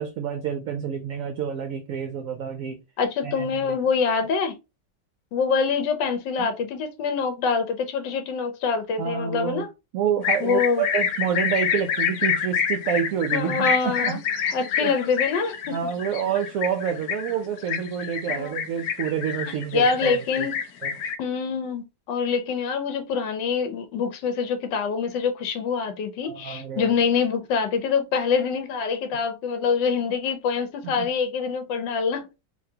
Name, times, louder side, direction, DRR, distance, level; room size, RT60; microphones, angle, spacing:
voice 1, 0.0-2.8 3.2-3.8 6.4-6.5 9.0-9.6 9.9-14.9 15.7-20.5 20.8-20.9 26.2-26.9 31.0-31.1, right 8 dB, 70° right, 0.8 m, -28 dB
voice 2, 3.0-4.5 5.3-9.7 10.4-10.8 13.3-14.2 14.5-15.5 18.3-18.6 19.7-20.5 21.2-32.2, left 5 dB, 85° left, 1.4 m, -25 dB
sound 1, 10.2-21.2, left 8 dB, 65° left, 1.1 m, -27 dB
4.1 x 2.9 x 2.7 m
omnidirectional pair, 1.9 m